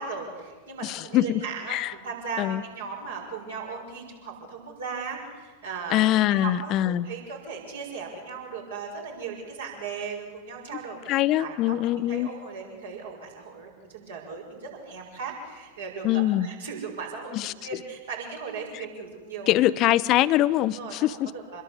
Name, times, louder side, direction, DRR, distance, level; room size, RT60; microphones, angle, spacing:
voice 1, 0.0-1.8 2.0-11.0 11.4-11.8 12.1-19.5 20.7-21.6, right 5 dB, 65° right, 0 dB, 6.4 m, -37 dB
voice 2, 0.8-1.4 1.7-1.9 2.4-2.6 5.9-7.1 11.1-12.3 16.0-16.5 17.3-17.5 19.5-21.3, left 14 dB, 35° left, 15 dB, 0.9 m, -23 dB
26.5 x 21.5 x 8.2 m, 1.4 s
figure-of-eight pair, 90°, 0 cm